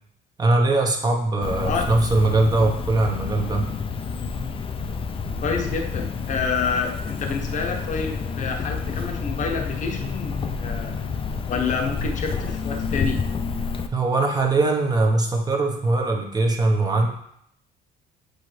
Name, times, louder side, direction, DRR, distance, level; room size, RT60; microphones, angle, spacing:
voice 1, 0.4-3.7 13.9-17.1, right 2 dB, 25° right, 2 dB, 1.0 m, -21 dB
Cricket, 1.4-13.9, left 5 dB, 30° left, 0.5 m, -29 dB
voice 2, 5.4-10.9 11.5-13.2, left 5 dB, 45° left, 3 dB, 0.9 m, -28 dB
7.9 x 4.0 x 3.2 m, 0.72 s
cardioid pair, 110°, 17 cm